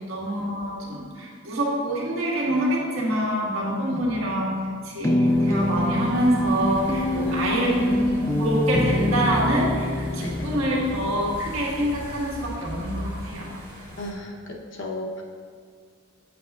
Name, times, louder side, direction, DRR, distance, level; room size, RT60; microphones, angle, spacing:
voice 1, 0.0-13.6, right 1 dB, 75° right, -5 dB, 1.6 m, -26 dB
sound 1, 4.0-4.6 5.0-12.0, left 1 dB, 15° left, 0.3 m, -26 dB
sound 2, 5.2-14.1, equal, 45° right, 1.6 m, -39 dB
voice 2, 7.2-7.9 10.2-10.6 14.0-15.2, equal, 65° left, 0 dB, 0.9 m, -35 dB
7.7 x 6.5 x 2.4 m, 2.1 s
head